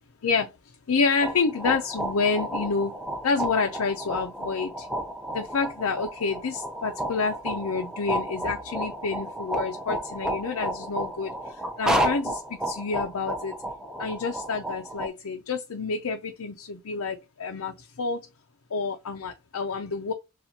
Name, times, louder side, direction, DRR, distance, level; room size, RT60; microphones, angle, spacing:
voice 1, 0.9-2.9 3.2-4.9 5.3-11.3 11.8-13.5 14.0-18.2 18.7-20.1, left 4 dB, 85° left, 0.6 m, -28 dB
sound 1, 1.0-15.1, right 1 dB, 5° right, 0.6 m, -32 dB
7.1 x 2.4 x 2.8 m
head